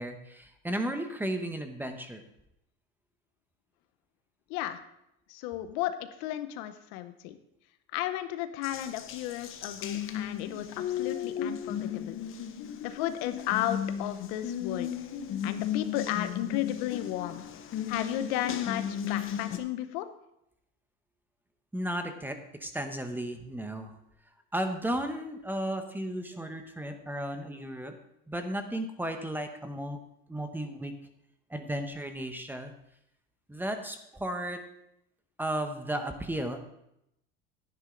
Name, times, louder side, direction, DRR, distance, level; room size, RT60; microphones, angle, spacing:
voice 1, 0.0-2.2 21.7-23.9 24.5-27.9 28.3-30.0 30.3-30.9 31.5-32.7 33.5-34.6 35.4-36.6, right 1 dB, 5° right, 6 dB, 1.1 m, -34 dB
voice 2, 5.3-7.4 7.9-12.2 12.8-14.9 15.4-17.4 17.9-20.1, left 13 dB, 75° left, 10 dB, 0.9 m, -34 dB
Water tap faucet, 8.6-19.6, left 9 dB, 45° left, 1.1 m, -35 dB
11.0 x 10.0 x 3.9 m, 0.80 s
supercardioid pair, 115°, 30 cm